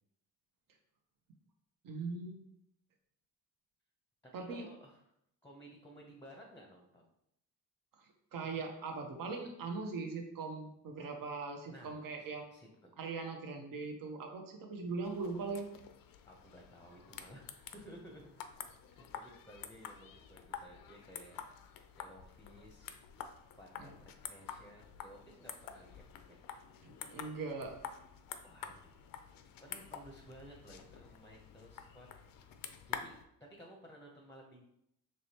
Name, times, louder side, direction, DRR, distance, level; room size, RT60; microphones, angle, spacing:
voice 1, 1.8-2.4 4.3-4.7 8.0-12.5 13.0-15.7 23.8-23.9 26.8-27.7, right 4 dB, 55° right, 3 dB, 0.9 m, -40 dB
voice 2, 4.4-5.1 5.4-7.1 11.7-12.9 16.3-21.4 22.0-22.9 23.6-26.4 28.4-29.1 29.3-32.6 32.9-34.7, equal, 5° left, 0 dB, 0.7 m, -56 dB
sound 1, 15.0-33.2, left 8 dB, 55° left, 0.5 m, -49 dB
5.0 x 3.2 x 2.9 m, 0.78 s
cardioid pair, 90°, 40 cm